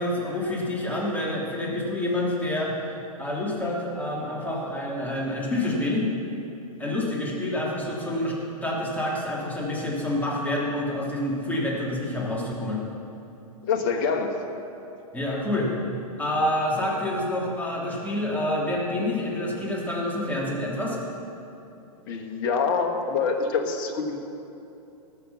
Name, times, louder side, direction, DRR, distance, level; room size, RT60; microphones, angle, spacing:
voice 1, 0.0-2.7 3.2-6.1 6.8-12.8 15.1-15.7 16.2-21.0, left 1 dB, 10° left, -4 dB, 2.9 m, -27 dB
voice 2, 13.7-14.3 22.1-24.2, left 5 dB, 45° left, 4 dB, 1.4 m, -25 dB
18.5 x 6.9 x 5.7 m, 2.8 s
hypercardioid pair, 110°, 19 cm